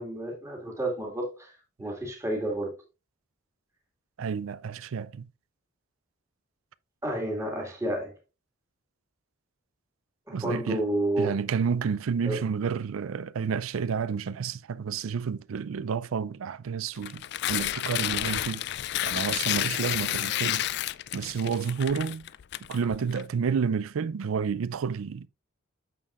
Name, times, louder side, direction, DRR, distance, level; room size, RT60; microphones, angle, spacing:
voice 1, 0.0-2.8 7.0-8.1 10.3-11.4 12.2-12.4, right 1 dB, 15° right, 1.9 m, -31 dB
voice 2, 4.2-5.3 10.3-10.8 11.2-18.7 19.0-20.7 21.1-22.3 22.7-25.3, right 6 dB, 85° right, 0.4 m, -30 dB
Tearing, 17.0-23.2, left 13 dB, 55° left, 0.3 m, -30 dB
9.2 x 6.6 x 2.4 m
head